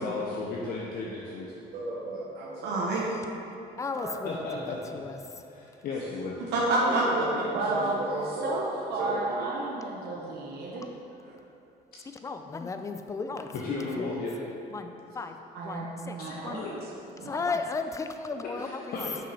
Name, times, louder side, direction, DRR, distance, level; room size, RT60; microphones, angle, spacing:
voice 1, 0.0-1.5 4.2-5.0 5.5-6.4 13.5-14.4 16.2-16.7 18.6-19.2, left 3 dB, 60° left, -3 dB, 0.8 m, -35 dB
voice 2, 1.5-3.1 4.0-4.1 6.5-8.6 9.0-9.5 11.3-11.4, right 2 dB, 85° right, -4 dB, 1.2 m, -29 dB
voice 3, 3.8-5.2 12.2-15.3 15.6-16.2 16.4-16.6 17.2-19.1, left 4 dB, 20° left, 7 dB, 0.4 m, -35 dB
voice 4, 7.5-8.0 8.2-10.9 15.5-16.8 17.1-17.4, right 2 dB, 65° right, -2 dB, 0.9 m, -33 dB
6.3 x 5.6 x 4.1 m, 2.9 s
cardioid pair, 110°, 17 cm